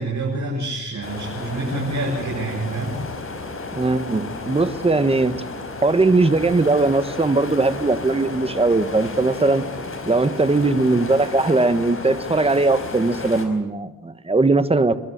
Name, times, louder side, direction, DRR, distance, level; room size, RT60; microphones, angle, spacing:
voice 1, 0.0-3.0, right 2 dB, 55° right, -3 dB, 7.6 m, -27 dB
sound 1, 1.0-13.5, left 3 dB, 35° left, 5.0 m, -33 dB
voice 2, 3.8-5.3 5.8-9.6 10.1-15.0, right 3 dB, 15° right, 11 dB, 1.3 m, -19 dB
29.0 x 12.0 x 8.7 m, 1.1 s
cardioid pair, 105°, 35 cm